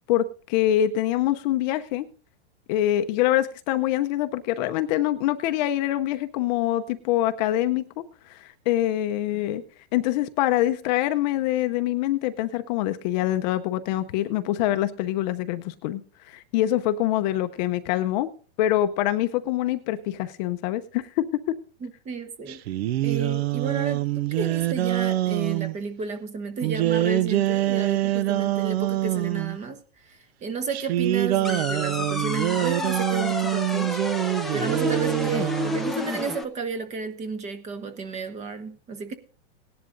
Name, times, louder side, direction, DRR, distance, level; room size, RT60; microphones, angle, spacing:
voice 1, 0.1-2.1 2.7-8.0 8.3-9.6 9.9-18.3 18.6-21.3, left 13 dB, 40° left, 10 dB, 0.7 m, -25 dB
voice 2, 21.8-22.6 23.0-34.0 34.5-39.1, right 4 dB, 20° right, 11 dB, 1.1 m, -33 dB
sound 1, 22.5-25.8 26.6-29.6 30.7-35.9, right 15 dB, 60° right, 0.6 m, -25 dB
sound 2, 31.4-36.4, left 2 dB, ahead, 0.6 m, -30 dB
18.0 x 11.0 x 2.6 m, 0.40 s
hypercardioid pair, 145°, 35 cm